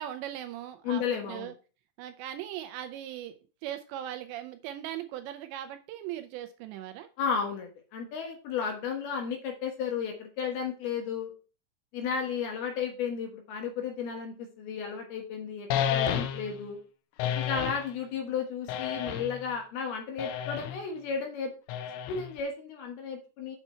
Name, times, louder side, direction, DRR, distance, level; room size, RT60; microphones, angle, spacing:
voice 1, 0.0-1.5 2.0-7.1, right 12 dB, 80° right, 9 dB, 2.7 m, -39 dB
voice 2, 0.8-1.5 7.2-11.3 11.9-16.8 17.3-21.5 22.1-23.6, left 6 dB, 65° left, 2 dB, 2.9 m, -33 dB
sound 1, 15.7-16.6 17.2-17.9 18.7-19.4 20.2-20.8 21.7-22.4, left 9 dB, 90° left, 3.3 m, -31 dB
8.0 x 5.7 x 4.4 m, 0.35 s
omnidirectional pair, 5.4 m